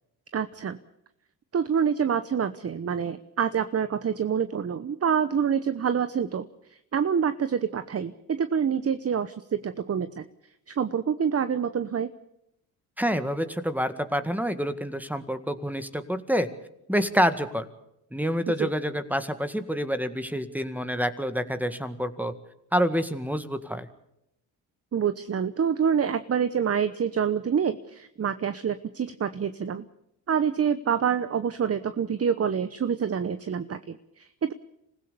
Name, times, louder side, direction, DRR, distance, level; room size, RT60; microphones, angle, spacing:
voice 1, 0.3-0.8 1.5-10.2 10.7-12.1 18.6-18.7 24.9-29.9 30.3-34.5, right 7 dB, 35° right, 12 dB, 1.0 m, -27 dB
voice 2, 13.0-16.5 16.9-17.7 18.1-22.3 22.7-23.9, equal, 5° right, 9 dB, 1.9 m, -27 dB
26.0 x 16.0 x 7.0 m, 0.82 s
supercardioid pair, 65°, 39 cm